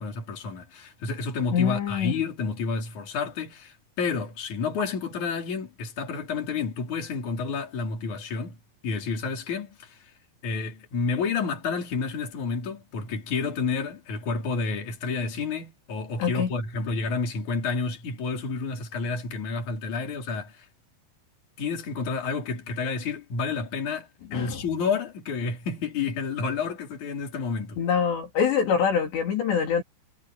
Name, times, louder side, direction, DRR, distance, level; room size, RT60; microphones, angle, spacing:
voice 1, 0.0-8.6 8.8-10.1 10.4-20.7 21.6-27.8, left 4 dB, 40° left, 5.3 m, -30 dB
voice 2, 1.5-2.2 16.2-16.5 24.3-24.6 27.8-29.8, left 7 dB, 65° left, 5.3 m, -24 dB
omnidirectional pair, 5.6 m